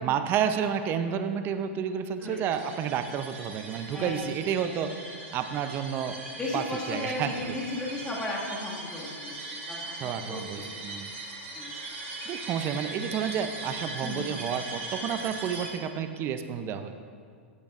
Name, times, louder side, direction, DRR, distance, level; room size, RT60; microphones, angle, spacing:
voice 1, 0.0-6.2 6.5-7.3 10.0-11.1 12.2-17.0, right 8 dB, 35° right, 9 dB, 0.7 m, -30 dB
sound 1, 2.5-15.7, right 2 dB, 80° right, 2.3 m, -40 dB
voice 2, 6.4-10.4 11.5-11.7 14.0-14.5, left 2 dB, 15° left, -5 dB, 2.0 m, -35 dB
15.0 x 8.4 x 2.5 m, 2.1 s
hypercardioid pair, 115°, 7 cm